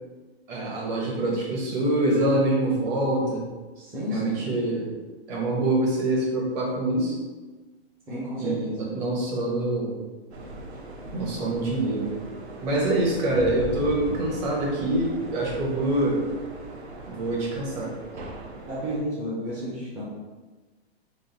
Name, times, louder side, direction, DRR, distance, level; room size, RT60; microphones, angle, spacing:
voice 1, 0.5-3.4 4.1-4.9 5.3-7.2 8.4-9.9 11.1-12.2 12.6-16.2 17.1-17.9, right 1 dB, 40° right, -3 dB, 1.3 m, -25 dB
voice 2, 3.8-4.5 8.1-8.6 12.7-13.0 18.7-20.0, equal, 10° right, -9 dB, 0.4 m, -32 dB
sound 1, 10.3-19.0, right 1 dB, 85° right, 0.9 m, -39 dB
3.7 x 2.5 x 4.0 m, 1.3 s
hypercardioid pair, 145°, 32 cm